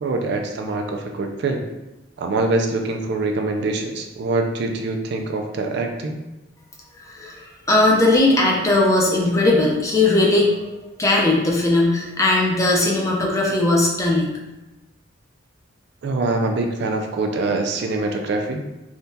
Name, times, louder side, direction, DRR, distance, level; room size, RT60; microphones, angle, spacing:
voice 1, 0.0-1.7 2.2-6.2 16.0-18.6, right 2 dB, 60° right, 3 dB, 0.3 m, -24 dB
voice 2, 7.0-14.3, left 2 dB, 15° left, -2 dB, 0.5 m, -18 dB
3.6 x 2.2 x 2.7 m, 1.0 s
head